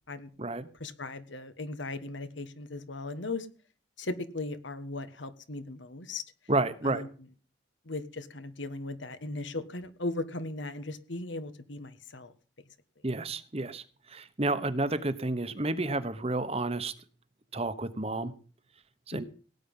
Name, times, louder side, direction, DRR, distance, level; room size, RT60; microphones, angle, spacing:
voice 1, 0.8-3.5 4.0-6.2 6.8-7.1 7.8-12.3 19.1-19.2, left 2 dB, 75° left, 12 dB, 1.4 m, -37 dB
voice 2, 6.5-7.0 13.0-13.8 14.1-16.9 17.5-18.3 19.1-19.2, right 2 dB, 30° right, 13 dB, 1.1 m, -30 dB
17.5 x 9.3 x 5.4 m, 0.40 s
head